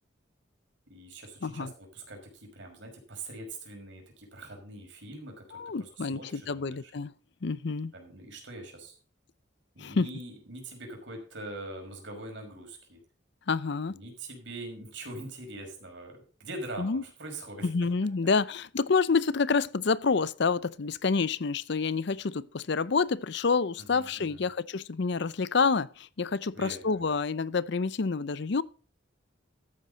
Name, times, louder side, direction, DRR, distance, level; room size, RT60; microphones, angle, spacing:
voice 1, 0.9-6.8 7.9-8.9 9.8-13.0 13.9-17.9 23.8-24.5 26.5-27.1, right 2 dB, 70° right, 5.4 m, -43 dB
voice 2, 1.4-1.7 5.5-7.1 7.4-7.9 9.8-10.1 13.5-14.0 16.8-17.0 17.6-28.6, left 4 dB, 65° left, 0.6 m, -28 dB
13.5 x 9.4 x 4.0 m
head